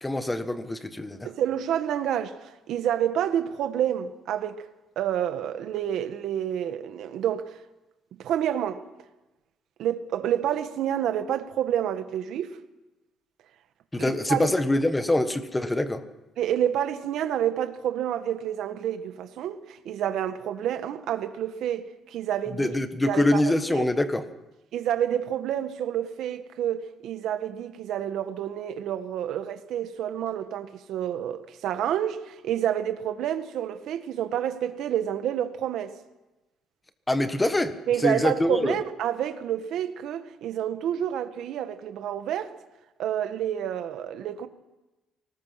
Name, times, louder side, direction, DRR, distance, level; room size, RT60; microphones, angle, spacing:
voice 1, 0.0-1.3 13.9-16.0 22.5-24.3 37.1-38.8, left 1 dB, 10° left, 1.4 m, -25 dB
voice 2, 1.2-4.6 5.0-7.6 8.2-8.8 9.8-12.6 14.0-14.5 16.4-22.7 23.1-23.4 23.7-23.9 24.7-36.0 37.9-42.5 43.0-44.5, right 10 dB, 65° right, 1.7 m, -29 dB
24.5 x 19.5 x 6.0 m
cardioid pair, 160°, 0 cm